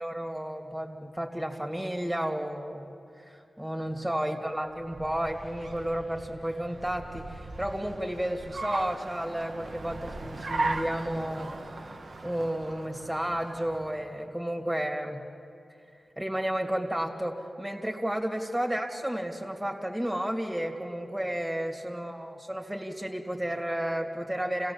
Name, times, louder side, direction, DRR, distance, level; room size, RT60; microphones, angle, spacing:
voice 1, 0.0-11.9 12.2-15.2 16.2-24.7, right 1 dB, 10° right, 2 dB, 2.8 m, -32 dB
Car, 4.6-14.1, right 2 dB, 70° right, 1.4 m, -38 dB
28.5 x 16.5 x 7.3 m, 2.6 s
cardioid pair, 50°, 0 cm